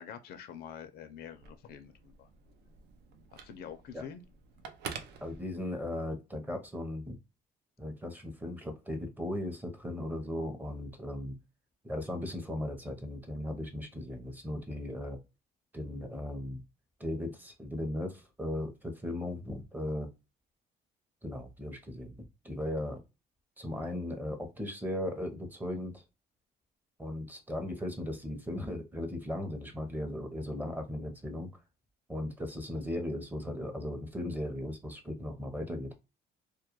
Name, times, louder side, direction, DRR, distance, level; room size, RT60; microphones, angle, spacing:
voice 1, 0.0-2.3 3.3-4.2, left 8 dB, 70° left, 0.5 m, -46 dB
Telephone, 1.3-6.0, right 6 dB, 80° right, 0.5 m, -48 dB
voice 2, 5.2-7.2 7.8-11.3 11.8-15.2 15.7-16.6 17.0-20.1 21.2-23.0 23.6-26.0 27.0-31.5 32.1-35.9, left 1 dB, 10° right, 0.6 m, -37 dB
2.2 x 2.1 x 2.9 m
cardioid pair, 110°, 17 cm